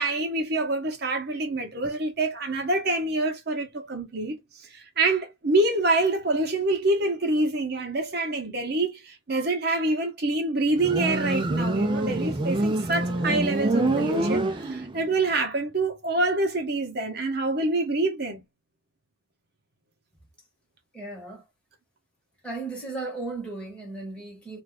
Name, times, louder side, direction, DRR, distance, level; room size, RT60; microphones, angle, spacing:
voice 1, 0.0-18.4, right 2 dB, 50° right, 0.7 m, -26 dB
Motorcycle, 10.8-15.1, right 2 dB, 25° right, 0.4 m, -26 dB
voice 2, 20.9-21.4 22.4-24.6, right 3 dB, 5° left, 1.0 m, -35 dB
2.5 x 2.3 x 3.3 m
head